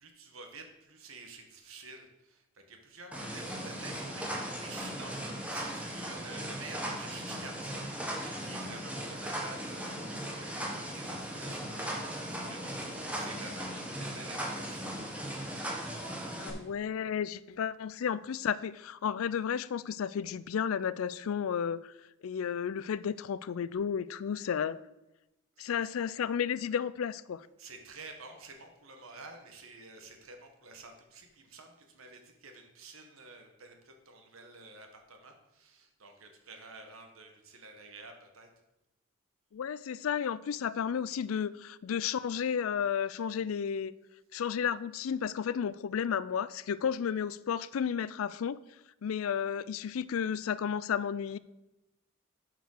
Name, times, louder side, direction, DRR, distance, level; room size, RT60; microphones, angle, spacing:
voice 1, 0.0-14.9 16.2-16.7 25.6-25.7 27.6-38.5, right 3 dB, 80° right, 4 dB, 1.4 m, -50 dB
sound 1, 3.1-16.5, right 1 dB, 5° right, 1.2 m, -38 dB
voice 2, 16.4-21.9 22.2-24.8 25.6-27.5 39.5-43.9 44.3-48.6 49.0-51.4, left 7 dB, 80° left, 18 dB, 0.4 m, -32 dB
7.8 x 5.0 x 6.6 m, 0.96 s
head